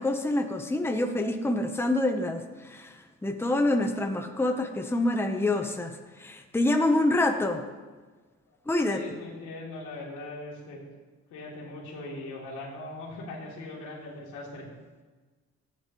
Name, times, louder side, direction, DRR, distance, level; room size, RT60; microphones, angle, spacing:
voice 1, 0.0-7.6 8.7-9.0, left 2 dB, 10° left, 5 dB, 1.0 m, -27 dB
voice 2, 8.9-10.8 11.3-14.6, left 2 dB, 90° left, -4 dB, 3.3 m, -40 dB
14.5 x 10.5 x 3.2 m, 1.3 s
cardioid pair, 90°, 30 cm